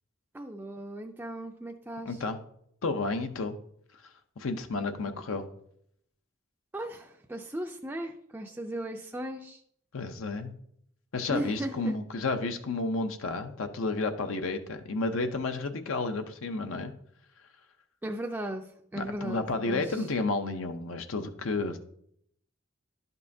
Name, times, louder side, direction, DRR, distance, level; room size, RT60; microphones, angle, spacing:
voice 1, 0.3-2.2 6.7-9.6 11.3-11.9 18.0-20.1, right 1 dB, 10° right, 2 dB, 0.3 m, -37 dB
voice 2, 2.1-2.4 2.8-3.6 4.4-5.5 9.9-10.5 11.1-16.9 18.9-21.8, left 3 dB, 80° left, 7 dB, 0.7 m, -31 dB
11.0 x 5.4 x 2.7 m, 0.69 s
head